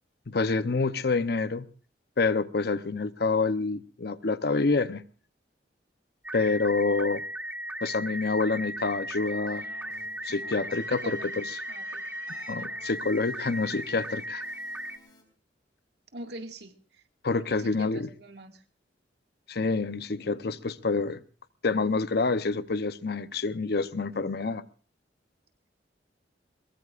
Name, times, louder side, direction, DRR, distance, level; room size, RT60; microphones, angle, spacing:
voice 1, 0.3-1.7 2.2-5.0 6.3-7.2 7.8-9.6 10.2-11.6 12.5-14.4 17.2-18.1 19.5-21.2 21.6-24.6, left 3 dB, 60° left, 0.7 m, -27 dB
sound 1, 6.2-15.0, right 1 dB, 10° right, 1.0 m, -37 dB
Keyboard (musical), 8.8-15.2, left 2 dB, 25° left, 5.0 m, -54 dB
voice 2, 10.9-11.4 11.7-12.0 16.1-17.0 17.5-18.6, right 2 dB, 65° right, 2.0 m, -43 dB
22.0 x 22.0 x 2.5 m
head